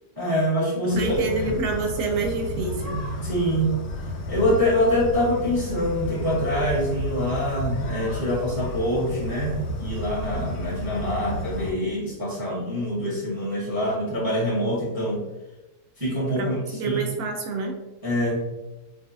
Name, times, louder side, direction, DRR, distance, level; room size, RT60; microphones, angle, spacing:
voice 1, 0.2-1.2 3.2-3.9 4.3-15.2 16.0-17.0 18.0-18.5, equal, 15° right, -7 dB, 1.0 m, -25 dB
sound 1, 0.9-11.7, left 1 dB, 75° left, 1.1 m, -32 dB
voice 2, 0.9-3.0 16.4-17.8, right 3 dB, 70° right, 2 dB, 1.1 m, -27 dB
4.8 x 2.4 x 2.5 m, 1.0 s
omnidirectional pair, 1.7 m